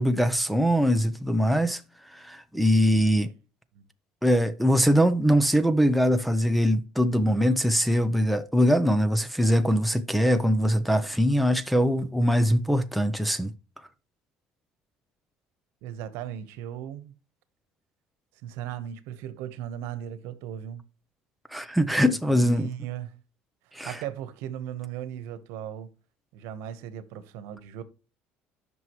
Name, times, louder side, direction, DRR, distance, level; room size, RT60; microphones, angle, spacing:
voice 1, 0.0-3.3 4.2-13.5 21.5-22.7 23.7-24.0, equal, ahead, 0.6 m, -22 dB
voice 2, 15.8-17.1 18.4-20.8 22.3-23.2 23.6-25.9 26.3-27.8, right 10 dB, 80° right, 1.1 m, -37 dB
11.0 x 6.1 x 3.1 m
cardioid pair, 150°, 4 cm